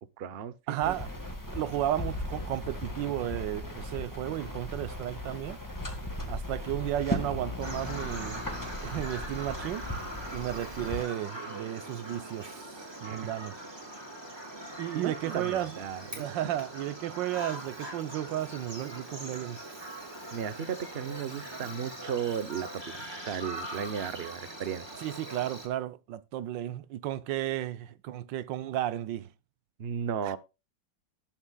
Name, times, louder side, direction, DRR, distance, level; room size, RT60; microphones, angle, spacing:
voice 1, 0.2-1.0 13.0-13.3 14.9-16.5 20.3-24.9 29.8-30.4, right 8 dB, 45° right, 0.9 m, -35 dB
voice 2, 0.7-1.1 1.5-5.6 6.3-8.5 8.8-9.9 10.3-12.7 13.0-13.5 14.8-15.8 16.2-19.6 25.0-29.3 30.2-30.3, right 12 dB, 85° right, 1.4 m, -33 dB
sound 1, 0.8-11.0, left 1 dB, 10° left, 1.8 m, -37 dB
Bird vocalization bird call bird song, 7.6-25.7, right 1 dB, 15° right, 3.2 m, -42 dB
19.0 x 7.3 x 2.3 m
omnidirectional pair, 1.9 m